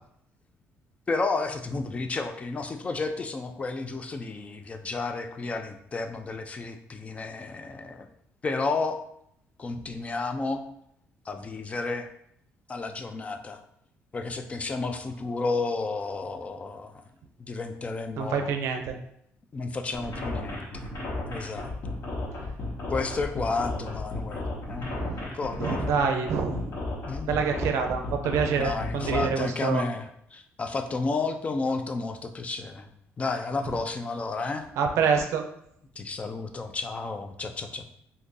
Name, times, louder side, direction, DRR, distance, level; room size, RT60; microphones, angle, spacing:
voice 1, 1.1-8.1 8.4-9.0 9.6-10.6 11.3-12.1 12.7-13.6 14.1-16.9 17.4-18.5 19.5-20.9 21.3-21.7 22.9-24.9 25.2-25.8 27.0-27.3 28.4-32.9 33.2-34.6 36.0-37.9, left 3 dB, 25° left, 6 dB, 0.3 m, -32 dB
voice 2, 18.2-19.0 24.8-25.2 25.6-26.7 27.3-29.8 34.8-35.4, right 6 dB, 75° right, 5 dB, 0.5 m, -26 dB
sound 1, 19.9-29.2, left 2 dB, 50° left, 0.9 m, -34 dB
2.6 x 2.6 x 3.7 m, 0.71 s
cardioid pair, 115°, 5 cm